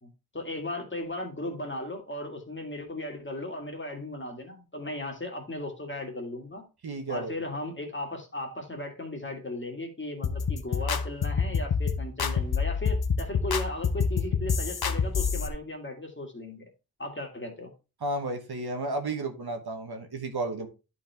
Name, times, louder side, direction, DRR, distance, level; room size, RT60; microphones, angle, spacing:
voice 1, 0.0-6.6 7.1-16.6 17.0-17.7, left 1 dB, 30° left, 2.0 m, -36 dB
voice 2, 6.8-7.3 18.0-20.7, right 2 dB, 80° right, 1.4 m, -32 dB
sound 1, 10.2-15.5, left 5 dB, 80° left, 0.9 m, -27 dB
10.5 x 4.6 x 3.5 m
wide cardioid pair, 80°, 37 cm